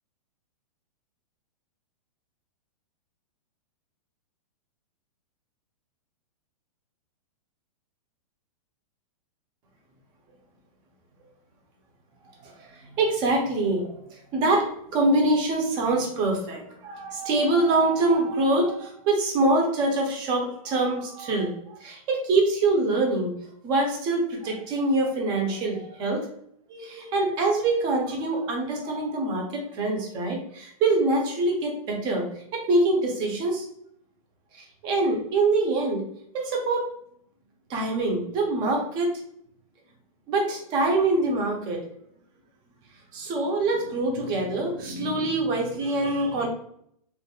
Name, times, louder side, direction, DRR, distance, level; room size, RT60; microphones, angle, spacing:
voice 1, 12.4-13.9 14.3-23.3 23.6-26.2 26.7-33.7 34.5-36.0 36.3-36.9 37.7-39.1 40.3-41.8 43.1-46.5, right 2 dB, 25° right, 1 dB, 0.5 m, -25 dB
2.5 x 2.3 x 2.8 m, 0.69 s
hypercardioid pair, 160°, 19 cm